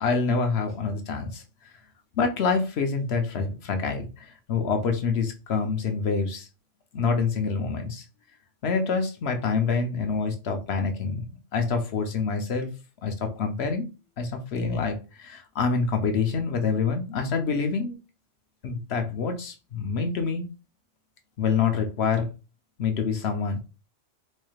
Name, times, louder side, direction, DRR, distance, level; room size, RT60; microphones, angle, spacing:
voice 1, 0.0-1.4 2.2-6.5 6.9-8.0 8.6-11.3 11.5-12.7 13.0-13.9 14.2-18.0 18.6-20.5 21.4-22.3 22.8-23.6, left 5 dB, 65° left, 5 dB, 0.9 m, -26 dB
4.3 x 3.2 x 2.3 m, 0.31 s
omnidirectional pair, 1.2 m